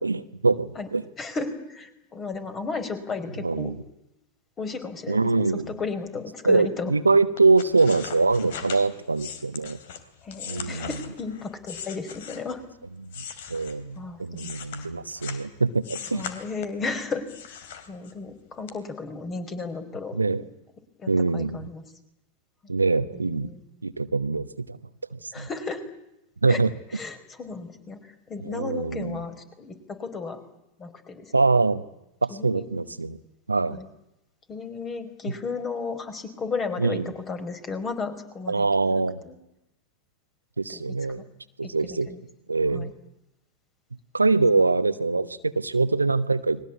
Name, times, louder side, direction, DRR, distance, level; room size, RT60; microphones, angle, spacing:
voice 1, 0.0-1.0 3.4-3.8 5.1-5.7 6.4-9.8 10.5-10.9 13.0-13.2 13.5-16.3 20.1-20.4 21.1-21.7 22.7-23.5 23.8-24.8 25.1-25.5 26.4-26.7 28.4-29.2 31.3-31.8 32.2-33.2 33.5-33.8 36.8-37.1 38.5-39.2 40.6-41.2 41.6-42.1 42.5-42.9 44.1-46.6, right 3 dB, 80° right, 12 dB, 1.1 m, -23 dB
voice 2, 1.2-3.7 4.6-6.9 10.2-12.6 13.9-14.5 16.1-17.6 17.9-20.1 21.0-21.8 23.1-23.6 25.3-25.8 26.5-26.6 26.9-28.0 28.3-30.4 30.8-31.3 32.3-32.8 33.7-33.9 34.5-39.3 40.7-41.2 42.1-42.2 42.7-42.9, left 4 dB, 25° left, 10 dB, 4.6 m, -34 dB
sound 1, 7.4-12.6 13.1-15.5 15.8-16.9 17.3-18.3 18.7-18.8, left 8 dB, 55° left, 3.0 m, -39 dB
29.5 x 21.5 x 8.5 m, 0.87 s
figure-of-eight pair, 90°, 0 cm